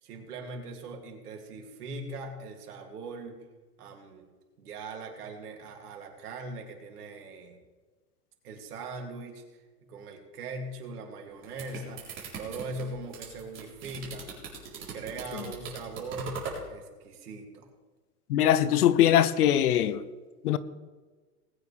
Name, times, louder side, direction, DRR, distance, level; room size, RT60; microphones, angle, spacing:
voice 1, 0.0-3.4 3.8-4.3 4.6-7.6 8.4-9.4 9.8-14.3 14.7-17.7, right 2 dB, 70° right, 3.0 m, -41 dB
sound 1, 11.2-16.6, right 5 dB, 25° right, 3.9 m, -40 dB
voice 2, 18.3-20.0 20.4-20.6, left 11 dB, 70° left, 0.9 m, -22 dB
19.5 x 9.3 x 3.5 m
hypercardioid pair, 135°, 47 cm